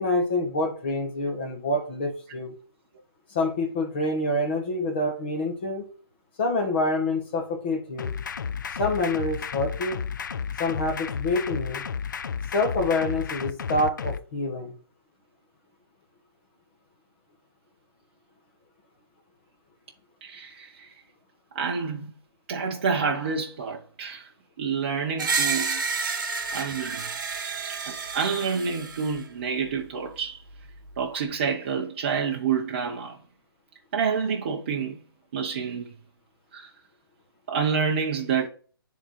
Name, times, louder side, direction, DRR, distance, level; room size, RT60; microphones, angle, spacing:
voice 1, 0.0-2.5 3.3-5.8 6.4-8.1 8.8-10.0 10.6-11.9 12.5-14.7, left 2 dB, 25° left, 1.1 m, -27 dB
sound 1, 8.0-14.2, left 6 dB, 50° left, 0.4 m, -32 dB
voice 2, 20.2-20.9 21.5-22.1 22.5-24.3 24.6-25.8 26.5-27.1 27.7-30.4 31.0-33.2 33.9-35.0 35.3-35.9 36.5-36.7 37.5-38.5, right 6 dB, 30° right, 0.7 m, -28 dB
Screech, 25.2-29.2, right 5 dB, 50° right, 1.0 m, -30 dB
9.8 x 3.7 x 3.0 m
hypercardioid pair, 170°, 13 cm